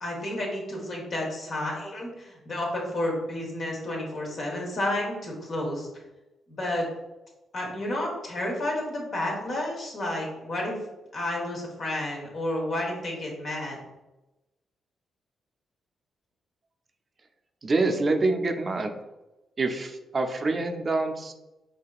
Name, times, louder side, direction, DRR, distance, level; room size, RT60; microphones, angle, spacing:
voice 1, 0.0-5.9 6.5-6.9 7.5-10.8 11.1-13.8, left 1 dB, 55° left, -1 dB, 1.3 m, -31 dB
voice 2, 17.6-18.9 19.6-21.3, right 3 dB, 40° right, 5 dB, 0.5 m, -26 dB
4.8 x 2.8 x 2.4 m, 1.0 s
supercardioid pair, 55°, 0 cm